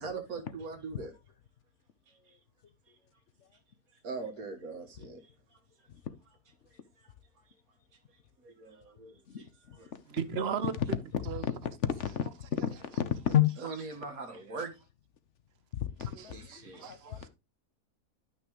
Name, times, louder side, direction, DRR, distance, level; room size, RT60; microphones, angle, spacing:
voice 1, 0.0-1.1 4.0-5.2 8.4-9.5 9.7-9.9 13.6-14.7 16.3-16.8, right 4 dB, 70° right, 1.9 m, -41 dB
voice 2, 9.3-10.0 11.1-13.5 15.7-17.3, left 10 dB, 55° left, 1.1 m, -32 dB
voice 3, 10.1-10.7 11.3-11.4 16.0-17.3, right 7 dB, 50° right, 0.9 m, -36 dB
12.0 x 5.9 x 3.0 m
omnidirectional pair, 1.6 m